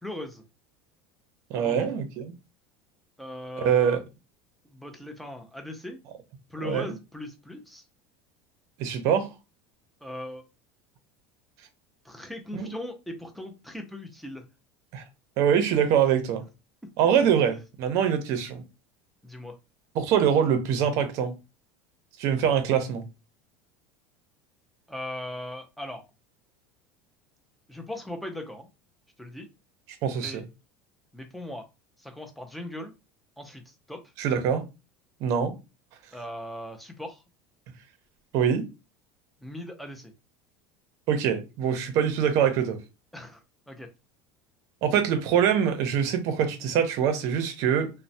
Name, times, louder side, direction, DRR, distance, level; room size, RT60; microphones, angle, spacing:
voice 1, 0.0-0.4 1.5-1.9 3.2-4.0 4.6-6.0 6.5-7.8 10.0-10.4 12.0-14.4 16.8-16.9 19.2-19.6 24.9-26.1 27.7-28.7 29.2-29.5 30.1-30.5 31.1-31.6 32.0-32.9 33.4-34.1 36.1-37.2 39.4-40.1 43.1-43.4 43.7-43.9, left 1 dB, ahead, 0.4 m, -39 dB
voice 2, 1.5-2.3 3.6-4.0 6.6-6.9 8.8-9.3 12.5-12.7 14.9-15.0 15.4-16.4 17.0-18.6 19.9-21.4 22.2-23.0 30.0-30.4 34.2-34.6 35.2-35.5 38.3-38.6 41.1-42.8 44.8-47.9, right 8 dB, 45° right, 0.5 m, -24 dB
3.0 x 2.0 x 2.6 m
cardioid pair, 165°, 7 cm